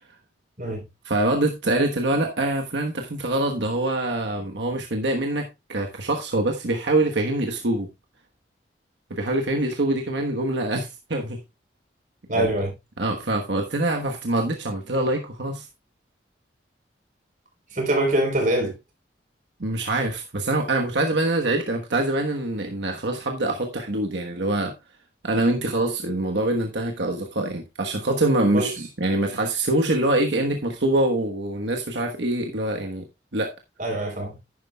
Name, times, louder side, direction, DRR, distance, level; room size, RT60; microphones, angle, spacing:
voice 1, 1.0-7.9 9.1-11.4 12.3-12.5 13.0-15.7 19.6-24.7 25.2-33.0 33.3-33.5, right 2 dB, 85° right, 1.3 m, -24 dB
voice 2, 12.3-12.7 17.7-18.7 28.5-28.7 33.8-34.4, right 1 dB, 45° right, 4.0 m, -24 dB
11.0 x 9.8 x 2.3 m
head